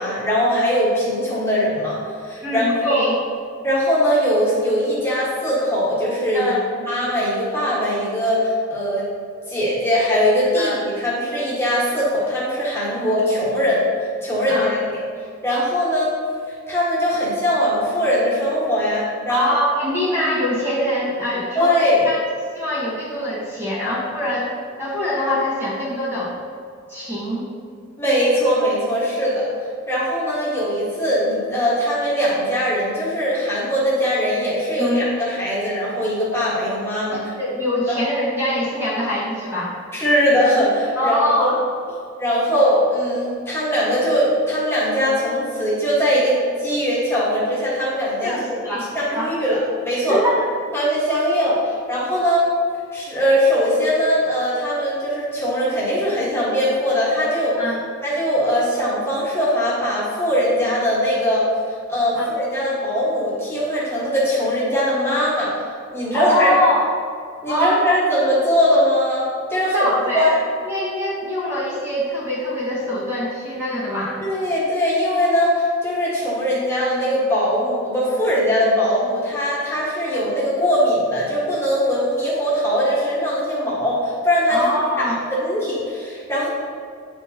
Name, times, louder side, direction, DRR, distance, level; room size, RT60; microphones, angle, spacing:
voice 1, 0.0-3.1 3.6-9.1 9.5-13.8 14.2-15.0 15.4-16.1 16.5-19.4 21.5-22.1 28.0-29.5 29.9-37.3 39.9-41.5 42.2-50.2 50.7-52.5 52.9-57.6 58.0-65.5 65.9-66.6 67.4-70.4 74.2-84.7 85.1-86.5, equal, 10° left, -8 dB, 1.6 m, -21 dB
voice 2, 2.4-3.2 6.3-6.6 10.5-10.8 13.0-13.1 14.5-14.7 19.3-22.2 22.5-24.5 24.8-26.3 26.9-27.5 34.8-35.0 37.3-39.7 41.0-41.6 48.2-49.3 50.1-50.5 57.6-57.8 62.1-62.3 66.1-66.9 67.5-68.0 69.7-70.3 70.6-74.2 84.5-85.2, left 1 dB, 10° right, -9 dB, 1.4 m, -23 dB
9.0 x 4.5 x 2.9 m, 2.3 s
head